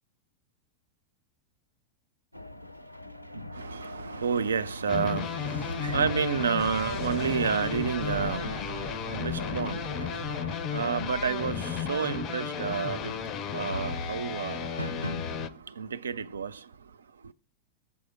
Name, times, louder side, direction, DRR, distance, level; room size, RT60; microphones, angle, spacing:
sound 1, 2.3-15.5, left 1 dB, 90° left, 0.4 m, -40 dB
voice 1, 3.5-17.0 17.2-17.3, right 6 dB, 70° right, 0.3 m, -31 dB
sound 2, 4.9-15.5, left 9 dB, 35° left, 0.4 m, -34 dB
Explosion, 6.6-11.4, right 3 dB, 50° right, 2.7 m, -42 dB
7.0 x 4.8 x 7.0 m
figure-of-eight pair, 90°, 0 cm